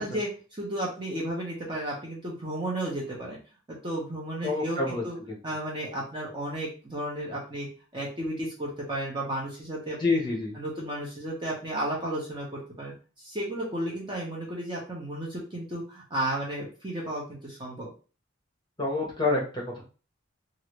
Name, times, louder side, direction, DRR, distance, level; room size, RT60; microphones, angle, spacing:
voice 1, 0.0-3.4 3.7-5.2 5.4-7.7 7.9-10.2 10.5-17.9, right 1 dB, 25° right, -4 dB, 0.9 m, -33 dB
voice 2, 4.4-5.0 10.0-10.5 18.8-19.8, left 3 dB, 20° left, -3 dB, 1.2 m, -27 dB
3.1 x 2.6 x 3.1 m, 0.36 s
head